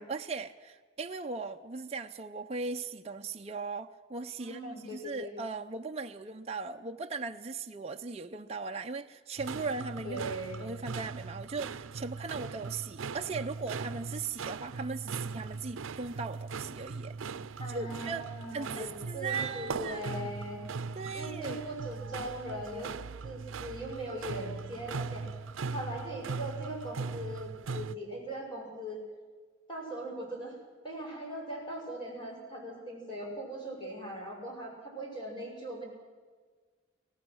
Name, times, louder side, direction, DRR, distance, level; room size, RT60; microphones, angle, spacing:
voice 1, 0.0-10.3 10.6-17.1 17.7-18.3 18.5-20.3 21.0-21.6, right 4 dB, 30° right, 4 dB, 0.5 m, -38 dB
voice 2, 4.4-5.4 10.0-10.6 17.6-20.7 21.1-22.9 23.2-25.3 25.7-29.0 29.7-30.6 30.8-35.8, right 1 dB, 25° left, -1 dB, 6.5 m, -40 dB
sound 1, 9.4-28.0, right 4 dB, 85° right, 0.5 m, -39 dB
25.0 x 17.5 x 6.3 m, 1.5 s
head